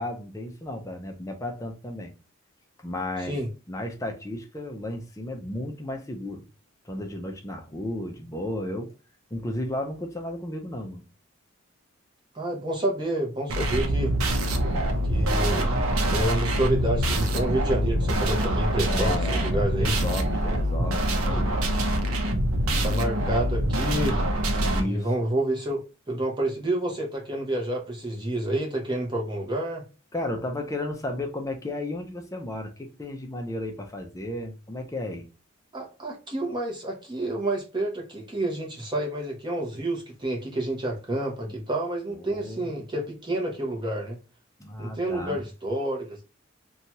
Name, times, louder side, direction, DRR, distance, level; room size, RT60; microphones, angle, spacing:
voice 1, 0.0-2.1 2.8-3.4 3.7-6.4 6.8-8.9 9.3-11.0 18.8-21.5 24.6-25.1 30.1-35.3 42.1-42.7 44.6-45.4, left 1 dB, 15° left, 0.4 m, -33 dB
voice 2, 12.3-14.1 15.1-15.7 16.1-20.0 22.8-24.2 24.8-29.8 35.7-44.2 44.8-46.2, right 1 dB, 20° right, 0.8 m, -29 dB
sound 1, 13.5-24.8, right 1 dB, 85° right, 0.6 m, -25 dB
2.8 x 2.3 x 2.8 m
head